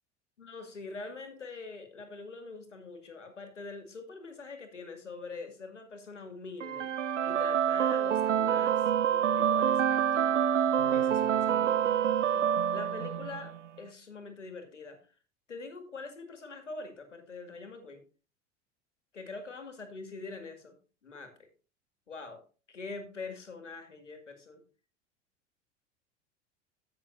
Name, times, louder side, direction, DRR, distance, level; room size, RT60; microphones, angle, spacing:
voice 1, 0.4-10.6 10.9-12.4 12.7-15.0 15.5-18.0 19.1-20.8 21.0-21.3 22.1-22.4 22.7-24.6, left 3 dB, 80° left, 7 dB, 2.1 m, -44 dB
sound 1, 6.6-13.6, right 9 dB, 85° right, 0.5 m, -27 dB
16.0 x 6.3 x 2.6 m, 0.36 s
figure-of-eight pair, 80°, 36 cm